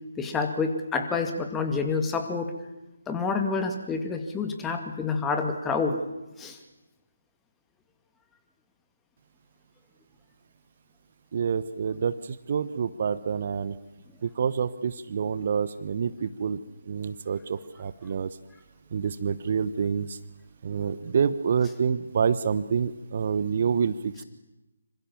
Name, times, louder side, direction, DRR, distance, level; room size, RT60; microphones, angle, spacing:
voice 1, 0.2-2.5 3.1-6.0 6.4-6.6, left 4 dB, 10° left, 5 dB, 2.3 m, -28 dB
voice 2, 11.3-12.2 12.5-13.7 14.2-16.6 16.9-18.3 18.9-20.2 20.6-24.2, right 6 dB, 40° right, 13 dB, 1.1 m, -27 dB
26.5 x 26.0 x 7.3 m, 0.99 s
figure-of-eight pair, 145°, 0 cm